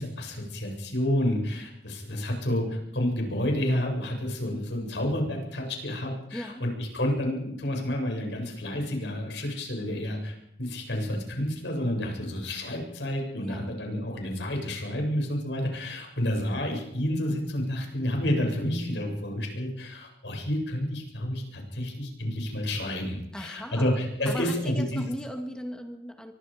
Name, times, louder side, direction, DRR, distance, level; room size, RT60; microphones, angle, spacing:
voice 1, 0.0-2.6 2.9-10.3 10.6-25.0, left 1 dB, 75° left, 1 dB, 7.8 m, -30 dB
voice 2, 6.3-6.6 13.4-13.8 23.3-24.0 24.3-26.3, equal, 5° left, 4 dB, 2.3 m, -38 dB
25.0 x 24.5 x 5.3 m, 0.82 s
head